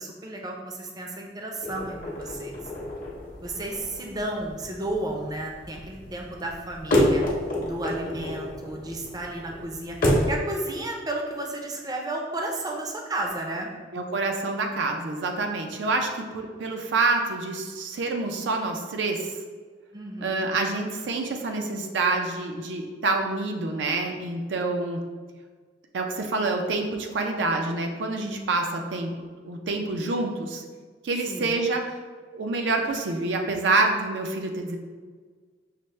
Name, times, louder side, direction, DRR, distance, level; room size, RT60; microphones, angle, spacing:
voice 1, 0.0-2.6 3.4-7.2 7.7-13.7 19.9-20.5 31.3-31.6, right 2 dB, 20° right, 0 dB, 0.5 m, -33 dB
sound 1, 1.6-10.4, left 1 dB, 50° left, 0.7 m, -29 dB
voice 2, 13.9-19.4 20.2-25.0 25.9-29.1 29.5-30.6 31.0-31.9 32.3-34.8, right 3 dB, 80° right, 3 dB, 0.4 m, -27 dB
5.7 x 2.1 x 3.2 m, 1.5 s
head